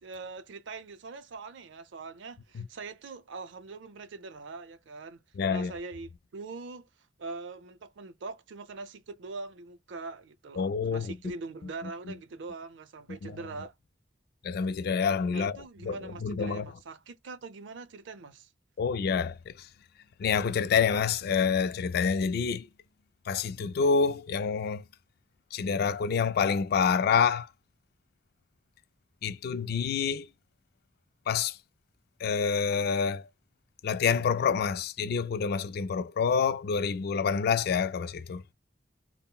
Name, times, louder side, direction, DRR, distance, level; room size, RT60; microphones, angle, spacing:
voice 1, 0.0-5.2 5.5-6.9 7.2-13.7 15.3-18.5, right 3 dB, 90° right, 0.5 m, -42 dB
voice 2, 5.4-5.7 10.6-11.1 13.2-13.3 14.4-16.7 18.8-19.7 20.2-22.7 23.3-24.8 25.5-27.5 29.2-30.3 31.3-31.6 32.2-33.2 33.8-38.4, left 6 dB, 55° left, 0.3 m, -27 dB
3.6 x 2.0 x 2.3 m
head